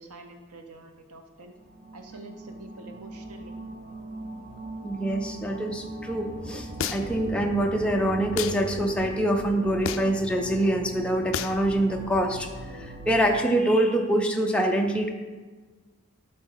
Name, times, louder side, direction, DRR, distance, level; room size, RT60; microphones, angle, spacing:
voice 1, 0.0-1.6 1.9-3.5, right 2 dB, 85° right, 5 dB, 0.9 m, -46 dB
sound 1, 1.6-13.4, right 2 dB, 40° right, 0.6 m, -39 dB
voice 2, 4.8-12.5 12.8-15.1, right 1 dB, 5° left, 2 dB, 0.5 m, -25 dB
sound 2, 6.8-7.2 8.4-8.6 9.8-10.2 11.3-11.6, left 7 dB, 60° left, 0.4 m, -30 dB
11.0 x 4.0 x 3.9 m, 1.3 s
head